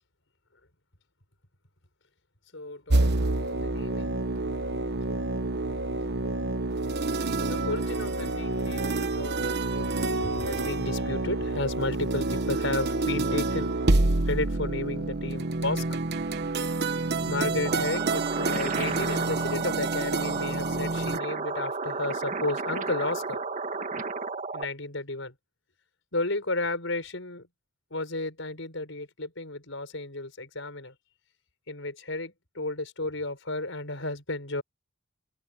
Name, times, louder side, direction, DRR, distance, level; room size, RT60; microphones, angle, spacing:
voice 1, 2.5-4.8 7.4-13.7 14.2-16.0 17.3-23.4 24.5-25.3 26.1-27.5 27.9-30.9 31.7-34.6, left 2 dB, 70° left, 6.5 m, -33 dB
sound 1, 2.9-21.2, right 2 dB, 55° right, 1.1 m, -28 dB
sound 2, 17.6-24.6, right 4 dB, 40° right, 2.1 m, -33 dB
open air
head